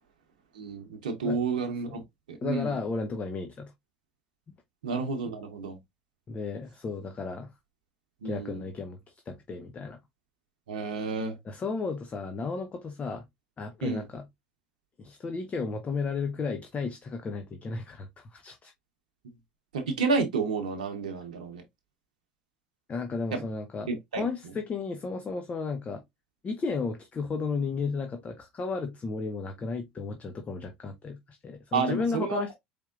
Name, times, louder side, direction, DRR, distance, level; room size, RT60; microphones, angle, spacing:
voice 1, 0.5-2.0 2.3-2.8 4.8-5.8 8.2-8.6 10.7-11.4 13.8-14.0 19.7-21.6 23.3-23.4 23.9-24.3 31.7-32.5, right 4 dB, 90° right, 0.8 m, -30 dB
voice 2, 2.4-3.7 6.3-7.5 8.2-9.0 9.3-10.0 11.4-13.2 13.6-14.3 15.0-18.7 22.9-23.9 24.2-26.0 26.4-32.5, left 4 dB, 30° left, 0.8 m, -33 dB
4.5 x 3.5 x 2.4 m
hypercardioid pair, 80°, 4 cm